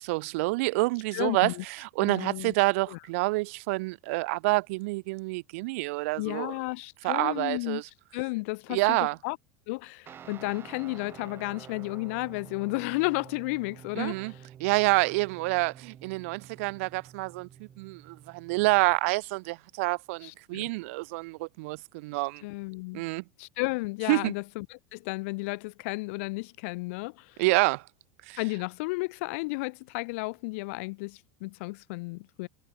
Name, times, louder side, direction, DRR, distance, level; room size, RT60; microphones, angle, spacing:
voice 1, 0.0-6.5 7.0-7.9 8.7-9.2 14.0-14.3 14.6-22.4 22.9-23.2 24.1-24.3 27.4-27.8 28.3-28.4, right 24 dB, 70° right, 0.7 m, -28 dB
voice 2, 1.1-1.6 2.0-2.5 2.9-3.0 6.2-7.8 8.1-9.4 9.7-14.5 20.2-20.7 22.1-23.0 23.4-27.4 28.4-32.5, left 26 dB, 70° left, 1.0 m, -33 dB
Guitar, 10.1-19.0, right 9 dB, 30° right, 4.2 m, -49 dB
supercardioid pair, 130°, 8 cm